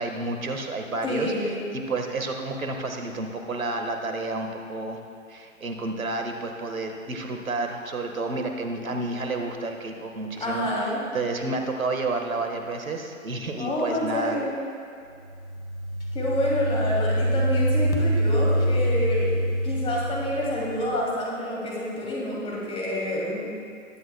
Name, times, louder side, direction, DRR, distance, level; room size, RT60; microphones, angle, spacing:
voice 1, 0.0-5.0 5.3-10.7 11.1-14.4, right 2 dB, 80° right, 4 dB, 1.5 m, -30 dB
voice 2, 1.0-1.7 10.4-11.0 13.6-14.5 16.1-19.4 19.6-23.5, left 1 dB, 15° left, -5 dB, 2.6 m, -28 dB
sound 1, 15.3-20.9, equal, 80° left, 1.9 m, -25 dB
20.5 x 8.9 x 2.2 m, 2.4 s
figure-of-eight pair, 120°, 41 cm